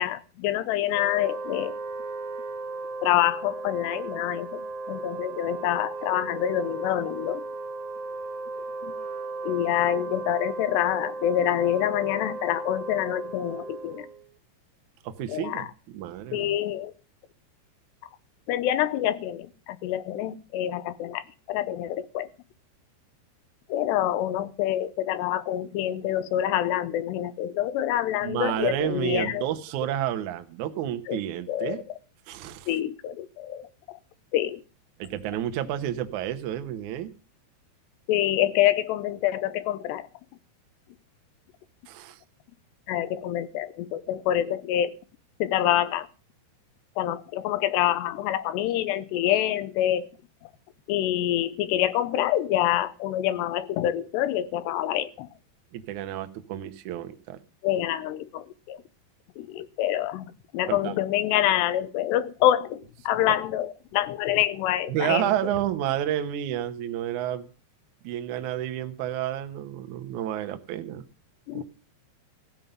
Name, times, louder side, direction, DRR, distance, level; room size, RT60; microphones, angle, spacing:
voice 1, 0.0-1.8 3.0-4.6 4.9-7.4 8.8-8.9 9.4-14.1 15.3-15.7 16.3-16.9 18.5-22.3 23.7-29.5 31.1-31.2 31.5-31.8 32.7-34.0 34.3-34.6 38.1-40.1 42.9-45.0 45.4-46.1 47.0-50.1 50.4-50.5 50.9-55.3 57.6-58.8 59.4-65.3 71.5-71.6, left 12 dB, 80° left, 2.8 m, -26 dB
Wind instrument woodwind instrument, 0.9-14.3, right 3 dB, 60° right, 2.2 m, -36 dB
voice 2, 15.0-15.7 15.9-16.5 28.2-31.8 32.3-32.7 35.0-37.1 41.9-42.2 55.7-57.4 60.7-61.0 63.3-63.4 64.9-67.5 68.0-71.1 71.5-71.6, right 11 dB, 80° right, 1.7 m, -30 dB
15.5 x 5.4 x 9.0 m
omnidirectional pair, 5.1 m